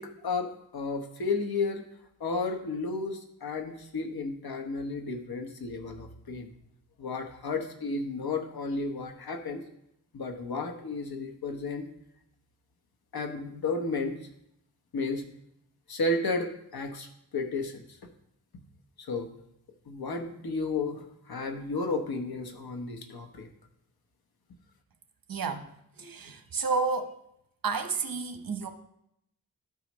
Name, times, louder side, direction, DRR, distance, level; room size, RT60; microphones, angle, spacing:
voice 1, 0.0-1.8 2.2-6.5 7.0-9.6 10.1-11.9 13.1-14.2 14.9-15.2 15.9-17.1 17.3-17.8 19.0-19.3 19.9-23.5, left 3 dB, 90° left, 4 dB, 1.1 m, -33 dB
voice 2, 25.3-27.1 27.6-28.7, right 4 dB, 70° right, 7 dB, 1.0 m, -31 dB
13.0 x 4.8 x 3.1 m, 0.77 s
wide cardioid pair, 95°, 36 cm